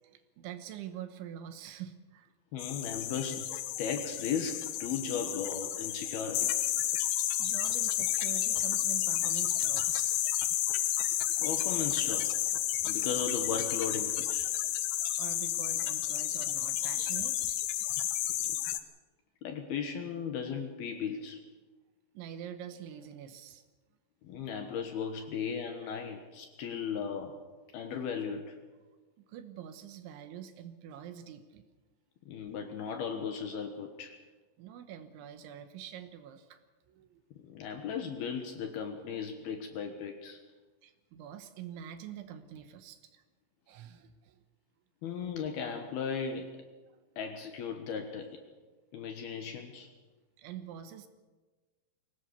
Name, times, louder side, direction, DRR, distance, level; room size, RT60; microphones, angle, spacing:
voice 1, 0.0-2.3 6.4-6.5 7.1-10.3 15.2-17.8 22.1-23.6 25.2-25.3 25.8-25.9 29.2-31.6 34.6-36.6 36.9-37.2 40.8-43.2 43.7-44.4 50.4-51.1, right 9 dB, 75° right, 8 dB, 3.4 m, -46 dB
voice 2, 2.5-6.5 11.4-12.3 12.9-14.5 19.4-21.4 24.2-27.4 27.7-28.6 32.3-34.2 37.4-40.4 45.0-46.6 47.2-48.4 48.9-49.9, left 6 dB, 65° left, 5 dB, 2.7 m, -36 dB
sound 1, 2.6-18.8, left 12 dB, 85° left, 2.1 m, -31 dB
23.5 x 17.5 x 6.8 m, 1.3 s
omnidirectional pair, 5.7 m